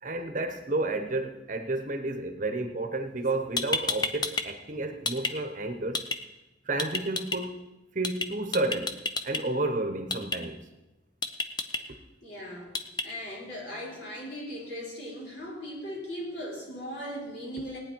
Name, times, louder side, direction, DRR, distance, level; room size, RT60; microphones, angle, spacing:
voice 1, 0.0-6.0 6.7-7.6 7.9-9.0 9.2-10.6, right 2 dB, 40° right, 7 dB, 1.1 m, -31 dB
sound 1, 3.2-3.3 3.6-4.4 4.7-5.3 5.9-6.2 6.8-7.4 8.0-8.3 8.5-9.4 10.1-10.4 11.2-11.8 12.7-13.0, left 3 dB, 20° left, 0.7 m, -29 dB
voice 2, 12.2-12.7 13.0-17.8, equal, 60° left, -4 dB, 5.1 m, -38 dB
18.0 x 9.6 x 4.6 m, 0.98 s
head